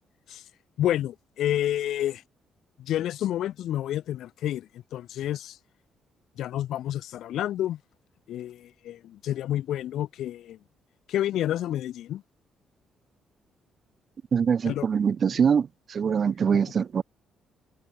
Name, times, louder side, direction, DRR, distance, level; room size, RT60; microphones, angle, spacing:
voice 1, 0.8-2.2 2.8-5.6 6.4-7.8 8.3-10.6 11.1-12.2 14.6-14.8, left 12 dB, 80° left, 0.7 m, -29 dB
voice 2, 14.3-17.0, right 7 dB, 50° right, 1.8 m, -23 dB
cardioid pair, 90°, 0 cm